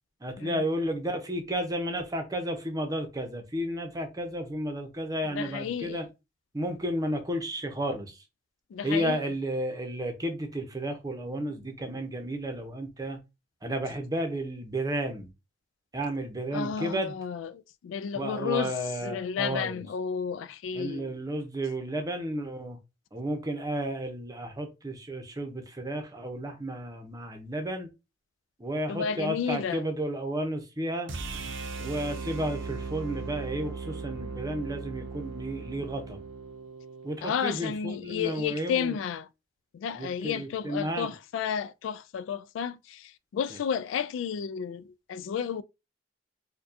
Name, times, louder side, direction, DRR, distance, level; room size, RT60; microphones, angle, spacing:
voice 1, 0.2-6.0 6.5-8.2 8.8-13.2 13.6-15.3 15.9-17.2 18.1-19.9 20.7-22.8 23.1-27.9 28.6-31.1 31.8-36.2 37.0-39.0 40.0-41.1, right 1 dB, 20° right, 0.7 m, -32 dB
voice 2, 5.3-6.1 8.7-9.2 16.5-18.7 19.0-21.1 28.9-29.8 37.2-39.3 39.7-45.6, left 7 dB, 80° left, 0.3 m, -32 dB
sound 1, 31.1-37.2, right 4 dB, 85° right, 0.6 m, -38 dB
4.6 x 2.2 x 2.7 m
head